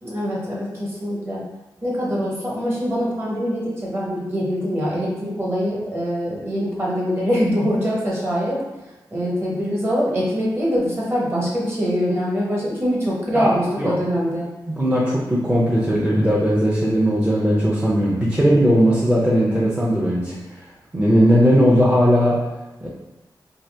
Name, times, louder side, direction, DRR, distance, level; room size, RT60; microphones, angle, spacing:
voice 1, 0.0-1.4 1.8-8.6 9.1-14.5, equal, 30° right, -5 dB, 1.0 m, -23 dB
voice 2, 14.7-20.3 20.9-22.4 22.8-22.9, equal, 10° right, -6 dB, 0.5 m, -18 dB
2.8 x 2.7 x 3.3 m, 1.0 s
wide cardioid pair, 125°, 8 cm